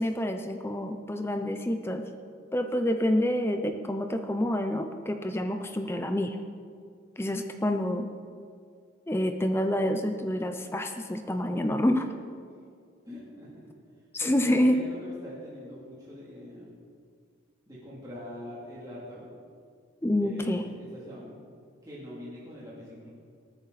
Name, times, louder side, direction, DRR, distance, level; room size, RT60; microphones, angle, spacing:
voice 1, 0.0-2.1 2.5-6.4 7.2-8.1 9.1-12.1 14.1-14.9 20.0-20.7, left 1 dB, 10° left, 6 dB, 0.5 m, -27 dB
voice 2, 13.0-13.5 14.2-16.7 17.7-19.3 20.2-21.4 21.8-23.1, left 1 dB, 20° right, -8 dB, 2.8 m, -43 dB
19.5 x 9.3 x 4.1 m, 2.2 s
head